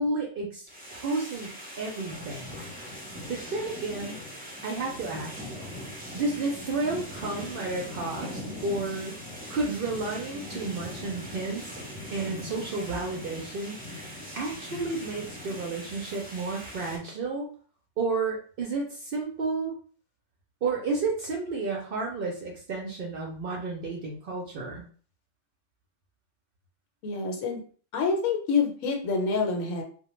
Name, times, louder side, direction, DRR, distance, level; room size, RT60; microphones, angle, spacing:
voice 1, 0.0-2.6 3.3-4.2 4.6-5.4 6.1-9.2 9.5-11.8 12.1-13.8 14.3-17.5 18.0-19.7 20.6-24.9, right 3 dB, 60° right, -1 dB, 0.6 m, -31 dB
sound 1, 0.7-17.0, left 1 dB, 10° right, 0.5 m, -40 dB
voice 2, 27.0-27.6 27.9-29.8, left 4 dB, 85° left, 2 dB, 1.1 m, -27 dB
2.1 x 2.1 x 3.0 m, 0.44 s
omnidirectional pair, 1.3 m